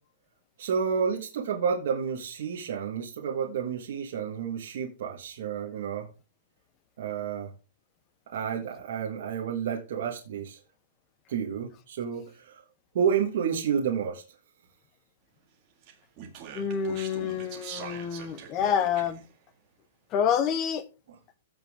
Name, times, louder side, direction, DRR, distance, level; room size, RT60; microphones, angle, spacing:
voice 1, 0.6-6.1 7.0-7.5 8.3-10.6 11.3-12.6 12.9-14.2, right 7 dB, 50° right, 1.7 m, -30 dB
Speech, 15.8-19.3, right 8 dB, 25° right, 2.0 m, -43 dB
voice 2, 16.5-19.2 20.1-20.8, left 8 dB, 20° left, 0.8 m, -27 dB
15.5 x 5.5 x 3.7 m
hypercardioid pair, 180°, 0 cm